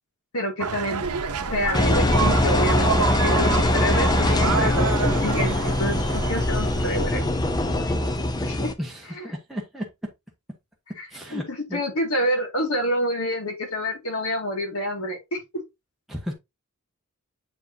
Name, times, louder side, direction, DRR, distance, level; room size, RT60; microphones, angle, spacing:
voice 1, 0.3-1.0 1.5-7.2 7.7-7.8 8.4-8.7 9.2-9.3 11.0-11.1 11.3-15.4, equal, 70° left, 2.2 m, -28 dB
sound 1, 0.6-7.4, right 6 dB, 85° right, 0.7 m, -29 dB
sound 2, 1.0-7.1, equal, 25° right, 2.0 m, -35 dB
Engine, 1.7-8.7, left 1 dB, 20° left, 0.6 m, -22 dB
voice 2, 8.8-9.8 11.1-11.4 11.7-11.8 16.1-16.3, equal, ahead, 1.2 m, -33 dB
7.7 x 4.9 x 2.8 m
head